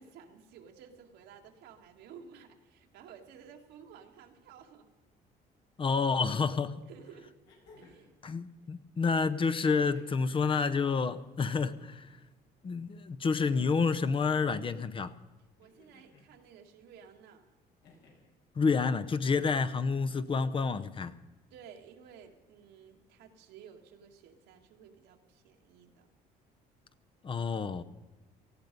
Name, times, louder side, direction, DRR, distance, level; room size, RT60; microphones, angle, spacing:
voice 1, 0.0-4.9 6.9-7.4 7.8-8.2 15.6-17.5 21.5-26.1, right 7 dB, 85° right, 2.1 m, -54 dB
voice 2, 5.8-6.8 8.2-12.2 12.6-15.1 18.6-21.1 27.2-27.8, left 5 dB, 30° left, 0.8 m, -29 dB
sound 1, 7.4-8.2 9.6-10.2 11.5-12.2 13.5-14.3 15.6-16.3 17.8-18.3 19.7-20.2 21.6-21.7, left 3 dB, 85° left, 5.3 m, -61 dB
18.5 x 14.5 x 5.3 m
cardioid pair, 110°, 17 cm